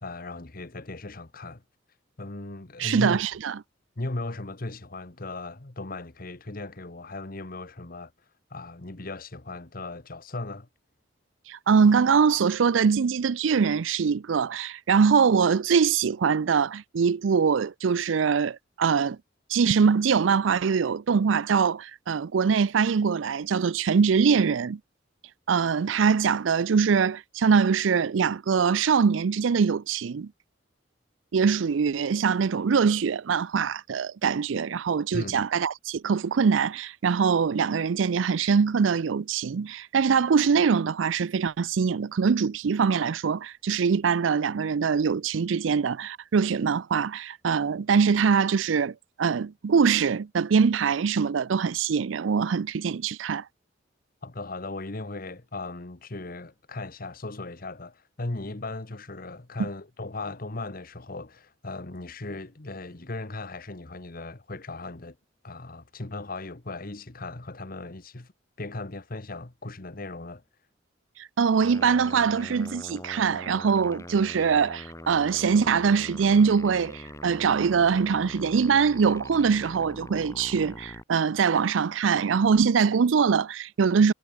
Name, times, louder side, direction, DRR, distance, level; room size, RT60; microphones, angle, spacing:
voice 1, 0.0-1.6 2.2-3.2 4.0-8.1 8.5-10.7 35.1-35.4 54.2-65.2 65.4-68.3 68.6-70.4, left 2 dB, 50° left, 1.4 m, -37 dB
voice 2, 2.8-3.5 11.5-19.2 19.5-24.8 25.5-30.3 31.3-53.4 71.2-84.1, right 6 dB, 90° right, 0.5 m, -23 dB
sound 1, 71.6-81.0, left 1 dB, 15° left, 3.3 m, -43 dB
head